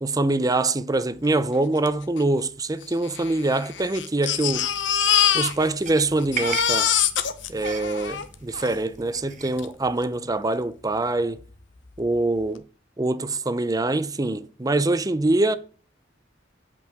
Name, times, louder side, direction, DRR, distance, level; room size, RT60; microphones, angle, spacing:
voice 1, 0.0-4.7 5.3-6.9 7.5-11.4 12.0-12.6 13.0-15.6, right 2 dB, 20° right, 0.6 m, -24 dB
Crying sobbing, 1.9-2.0 2.2-2.3 3.0-5.9 6.2-8.8 9.6-9.7 10.0-10.1, left 9 dB, 70° left, 1.0 m, -24 dB
sound 1, 4.5-9.7, right 5 dB, 40° right, 1.3 m, -38 dB
8.2 x 5.4 x 7.8 m
head